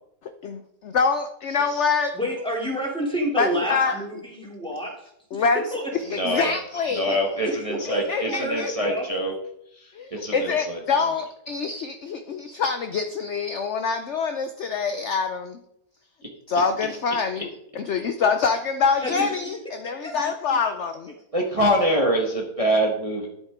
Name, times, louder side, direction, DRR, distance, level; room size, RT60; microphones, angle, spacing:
voice 1, 0.2-2.1 3.4-3.9 5.3-5.6 6.1-7.2 8.1-8.7 9.9-15.6 16.5-17.5 17.8-21.1, left 5 dB, 60° left, 8 dB, 0.8 m, -25 dB
voice 2, 2.1-5.9 7.4-9.1 19.0-19.3 20.0-20.1 21.6-21.7, equal, 5° left, -2 dB, 2.8 m, -29 dB
voice 3, 6.1-6.5 6.9-9.3 9.7-10.8 21.3-23.3, equal, 20° right, 0 dB, 1.3 m, -25 dB
11.0 x 8.3 x 3.6 m, 0.74 s
omnidirectional pair, 1.7 m